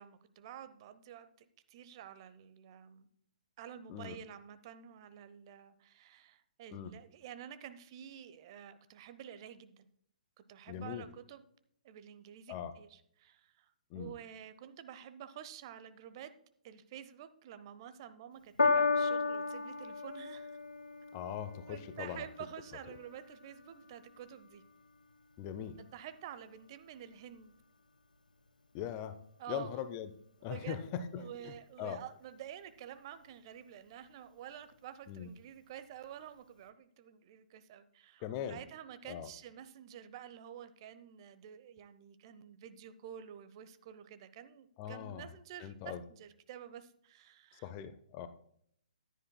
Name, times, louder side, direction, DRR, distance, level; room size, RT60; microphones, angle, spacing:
voice 1, 0.0-3.1 3.6-9.9 10.4-11.4 11.8-16.3 16.6-20.5 21.7-24.6 25.9-27.5 29.4-29.8 30.4-47.7, right 10 dB, 35° right, 12 dB, 0.7 m, -50 dB
voice 2, 10.7-11.0 12.5-12.7 13.9-14.1 21.1-22.3 25.4-25.8 28.7-29.2 29.5-30.1 30.4-32.0 35.1-35.3 38.2-38.6 39.0-39.3 44.8-45.3 45.6-46.0 47.6-48.3, left 9 dB, 25° left, 11 dB, 0.6 m, -41 dB
Piano, 18.6-25.2 26.0-26.1, left 4 dB, 80° left, 0.9 m, -35 dB
14.5 x 10.0 x 2.2 m, 0.67 s
figure-of-eight pair, 125°, 4 cm